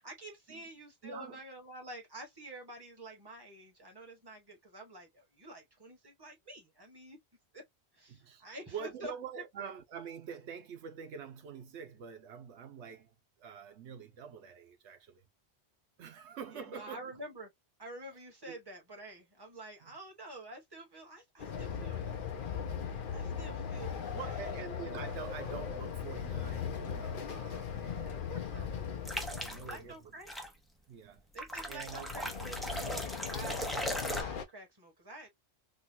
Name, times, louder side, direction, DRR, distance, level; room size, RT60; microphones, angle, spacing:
voice 1, 0.0-7.2 7.5-7.6 7.9-9.1 9.6-9.7 16.5-17.5 17.8-24.5 27.9-28.7 29.6-30.3 31.3-35.3, right 1 dB, 20° right, 1.4 m, -49 dB
voice 2, 1.0-1.4 8.1-15.3 16.0-17.2 18.4-18.6 19.8-19.9 24.1-28.7 29.4-30.0 30.9-31.2 31.7-32.2, right 7 dB, 85° right, 1.1 m, -46 dB
Train, 21.4-29.9 31.7-34.4, left 7 dB, 55° left, 0.8 m, -39 dB
sound 1, 29.1-29.8 30.3-30.5 31.4-34.2, equal, ahead, 0.6 m, -38 dB
3.8 x 2.3 x 2.6 m
omnidirectional pair, 1.1 m